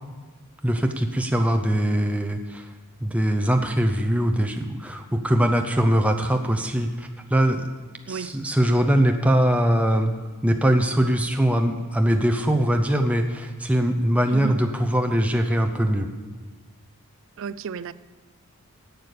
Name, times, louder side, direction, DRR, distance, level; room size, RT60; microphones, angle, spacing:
voice 1, 0.6-2.7 3.0-7.7 8.1-10.1 10.4-16.1, equal, 5° right, 4 dB, 0.6 m, -22 dB
voice 2, 17.4-17.9, right 6 dB, 60° right, 17 dB, 0.4 m, -32 dB
11.0 x 8.1 x 6.7 m, 1.4 s
head